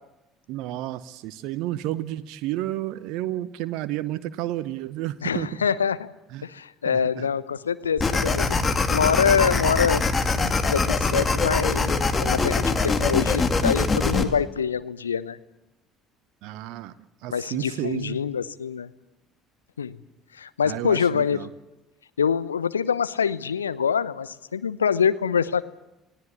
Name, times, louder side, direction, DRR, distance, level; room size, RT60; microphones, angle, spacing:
voice 1, 0.5-5.5 6.3-6.5 6.8-7.3 16.4-18.2 20.6-21.5, right 14 dB, 60° right, 14 dB, 0.9 m, -31 dB
voice 2, 5.2-6.1 6.4-8.6 8.9-10.0 10.3-15.4 17.3-18.9 19.8-20.0 20.3-21.5 22.2-25.7, left 7 dB, 80° left, 15 dB, 0.8 m, -25 dB
sound 1, 8.0-14.2, left 3 dB, 25° left, 2.5 m, -23 dB
28.5 x 17.0 x 8.5 m, 0.95 s
figure-of-eight pair, 55°, 0 cm